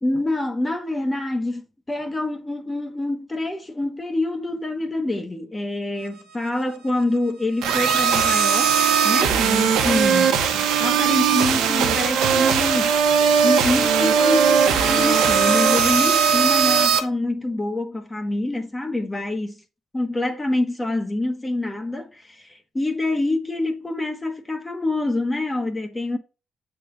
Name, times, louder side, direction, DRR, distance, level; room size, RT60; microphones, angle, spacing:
voice 1, 0.0-12.9 13.4-19.6 19.9-26.2, left 2 dB, 20° left, 1.0 m, -26 dB
sound 1, 7.6-17.0, right 7 dB, 90° right, 1.0 m, -19 dB
7.5 x 3.9 x 3.7 m
cardioid pair, 90°, 0 cm